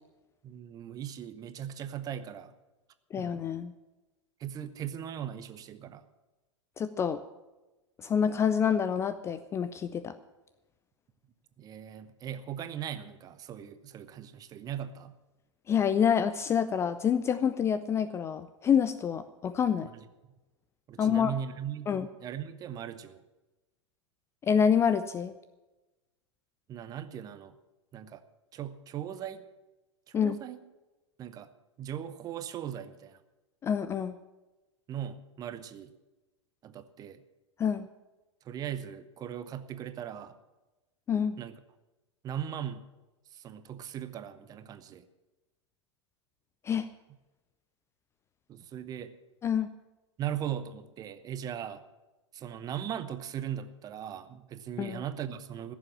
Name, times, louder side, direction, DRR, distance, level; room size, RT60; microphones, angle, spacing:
voice 1, 0.4-2.5 3.2-3.4 4.4-6.0 11.6-15.1 19.8-20.1 20.9-21.9 22.2-23.2 26.7-27.5 27.9-28.2 28.5-29.5 30.1-30.6 31.2-31.5 31.8-33.2 34.9-35.9 36.6-37.2 38.4-40.3 41.4-41.6 42.2-42.8 43.3-45.0 48.5-49.1 50.2-51.8 52.3-55.8, right 9 dB, 25° right, 12 dB, 0.9 m, -39 dB
voice 2, 3.1-3.7 6.8-7.2 8.0-10.1 15.7-19.9 21.0-21.3 21.9-22.1 24.4-25.3 30.1-30.4 33.6-34.2 37.6-37.9 41.1-41.4 46.7-46.9 49.4-49.7 54.8-55.0, left 7 dB, 15° left, 12 dB, 0.5 m, -27 dB
15.5 x 7.2 x 8.8 m, 1.1 s
figure-of-eight pair, 100°, 16 cm